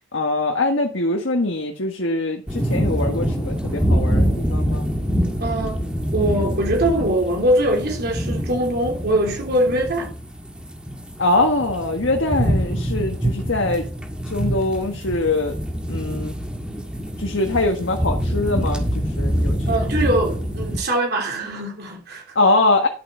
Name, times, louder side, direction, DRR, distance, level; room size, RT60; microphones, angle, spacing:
voice 1, 0.1-4.9 11.2-13.9 14.3-15.6 15.9-16.3 17.2-19.6 22.3-22.9, left 2 dB, 70° left, 1.6 m, -22 dB
Thunderstorm light rain, 2.5-20.8, equal, 5° right, 1.7 m, -25 dB
voice 2, 5.4-5.8 6.1-10.1 19.7-22.3, right 1 dB, 55° right, 3.3 m, -22 dB
12.0 x 7.8 x 3.9 m
head